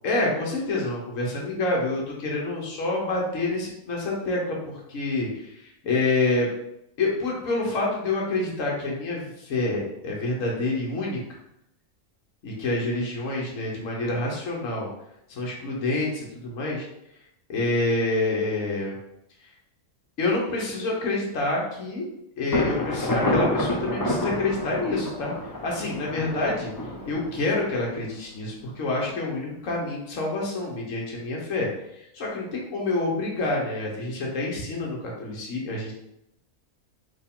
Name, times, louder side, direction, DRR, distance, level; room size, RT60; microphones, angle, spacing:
voice 1, 0.0-6.5 7.0-11.2 12.4-14.9 15.3-16.9 17.5-18.9 20.2-22.1 22.4-25.3 25.6-26.7 27.1-31.7 32.0-32.5 32.7-35.9, left 2 dB, 80° left, -2 dB, 1.3 m, -27 dB
Thunder, 22.5-28.2, left 1 dB, 25° left, 0.4 m, -29 dB
4.5 x 2.9 x 3.6 m, 0.81 s
omnidirectional pair, 1.3 m